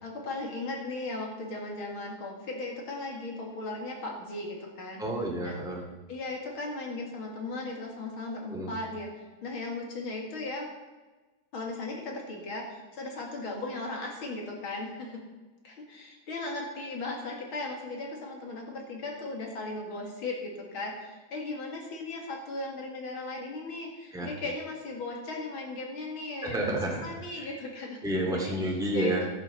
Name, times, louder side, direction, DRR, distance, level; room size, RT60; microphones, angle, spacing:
voice 1, 0.0-5.0 5.4-5.6 6.1-10.7 11.5-15.2 15.6-26.6 27.0-28.5 28.9-29.3, left 2 dB, 85° left, 0 dB, 3.1 m, -37 dB
voice 2, 5.0-5.8 8.5-8.8 24.1-24.3 26.4-27.1 27.3-27.5 28.0-29.2, right 1 dB, ahead, -2 dB, 2.1 m, -30 dB
11.5 x 8.9 x 5.7 m, 1.2 s
omnidirectional pair, 2.2 m